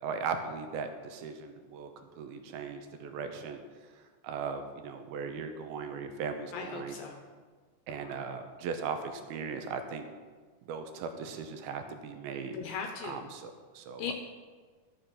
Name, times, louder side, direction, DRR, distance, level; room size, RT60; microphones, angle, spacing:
voice 1, 0.0-1.9 2.2-3.6 3.9-7.0 7.9-10.1 10.7-12.6 13.0-14.1, right 5 dB, 80° right, 6 dB, 2.7 m, -38 dB
voice 2, 6.5-7.2 12.5-13.2 14.0-14.1, left 6 dB, 75° left, 3 dB, 2.5 m, -38 dB
13.0 x 6.9 x 6.0 m, 1.5 s
omnidirectional pair, 4.4 m